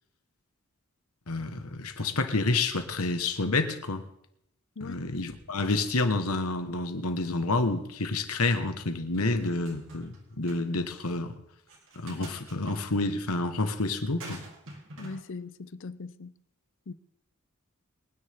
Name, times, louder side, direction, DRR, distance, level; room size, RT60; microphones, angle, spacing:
voice 1, 1.3-4.1 4.8-11.3 11.9-14.4, left 3 dB, 80° left, 1.4 m, -29 dB
sound 1, 9.1-10.2 10.5-10.6 11.7-12.8 14.2-15.2, right 2 dB, 60° right, 2.9 m, -45 dB
voice 2, 15.0-16.3 16.9-17.0, left 4 dB, 60° left, 0.6 m, -40 dB
24.0 x 9.8 x 3.6 m
head